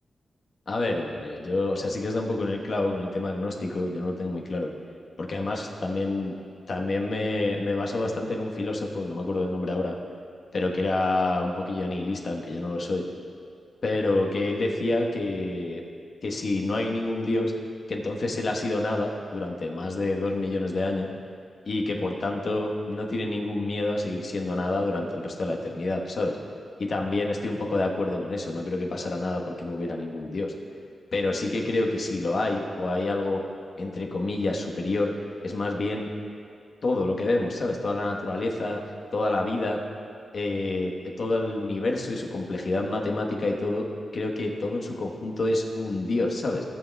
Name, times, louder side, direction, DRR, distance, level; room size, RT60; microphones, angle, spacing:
voice 1, 0.7-4.7 5.2-6.3 6.7-9.9 10.5-13.0 13.8-15.8 16.2-17.5 17.9-21.1 21.7-26.4 26.8-30.5 31.1-33.4 33.8-35.1 35.4-36.1 36.8-38.8 39.1-39.8 40.3-40.9 41.2-43.9 44.1-46.6, left 2 dB, 55° left, 0 dB, 1.2 m, -28 dB
17.0 x 7.3 x 2.3 m, 2.4 s
cardioid pair, 85°, 0 cm